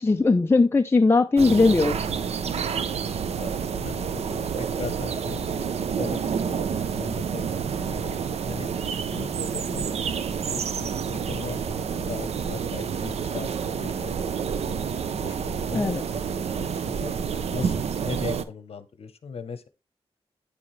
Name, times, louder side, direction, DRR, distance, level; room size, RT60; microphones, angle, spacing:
voice 1, 0.0-2.0 15.7-16.0, left 3 dB, 25° left, 0.6 m, -19 dB
sound 1, 1.4-18.4, right 6 dB, 85° right, 0.7 m, -29 dB
voice 2, 3.4-6.2 6.5-8.2 8.4-8.7 9.1-9.9 10.2-14.7 15.2-17.1 17.5-19.7, left 5 dB, 70° left, 1.0 m, -39 dB
9.4 x 7.0 x 3.3 m
wide cardioid pair, 100°, 10 cm